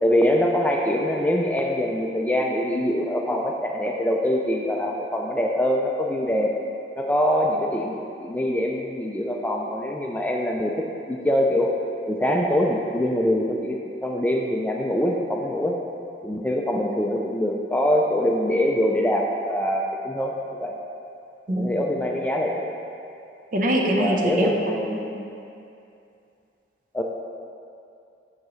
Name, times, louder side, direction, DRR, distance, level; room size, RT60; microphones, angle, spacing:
voice 1, 0.0-6.5 7.0-10.7 11.1-11.7 12.1-15.8 16.2-20.4 20.6-20.8 21.5-22.7 23.8-25.3 26.9-27.0, equal, 10° left, 0 dB, 0.4 m, -24 dB
voice 2, 23.5-24.5 24.9-25.0, right 1 dB, 50° right, 0 dB, 0.7 m, -23 dB
7.2 x 6.5 x 3.1 m, 2.6 s
head